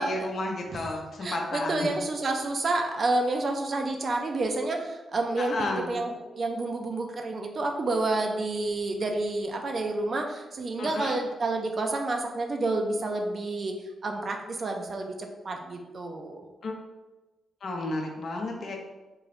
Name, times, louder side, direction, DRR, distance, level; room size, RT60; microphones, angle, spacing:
voice 1, 0.0-1.9 5.4-5.9 10.8-11.2 16.6-16.7 17.6-18.8, left 2 dB, 55° left, 1 dB, 0.6 m, -32 dB
voice 2, 1.2-5.6 5.9-16.4, right 2 dB, 45° right, 3 dB, 0.4 m, -29 dB
3.8 x 2.5 x 3.1 m, 1.2 s
cardioid pair, 110°, 0 cm